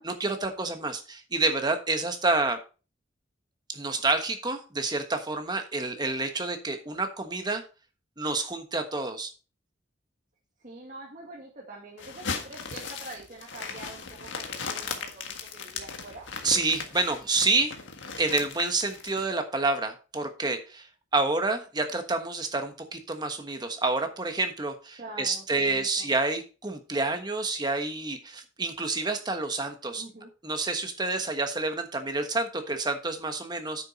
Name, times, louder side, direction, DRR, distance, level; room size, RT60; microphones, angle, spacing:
voice 1, 0.0-2.6 3.7-7.6 8.2-9.3 16.4-17.8 18.2-20.9 21.1-30.0 30.4-33.9, right 3 dB, 20° right, 6 dB, 1.3 m, -28 dB
voice 2, 10.6-16.3 25.0-26.1 29.9-30.3, right 2 dB, 45° right, -3 dB, 2.1 m, -45 dB
sound 1, 12.0-19.2, left 5 dB, 75° left, 1.7 m, -37 dB
9.2 x 7.0 x 4.1 m, 0.34 s
head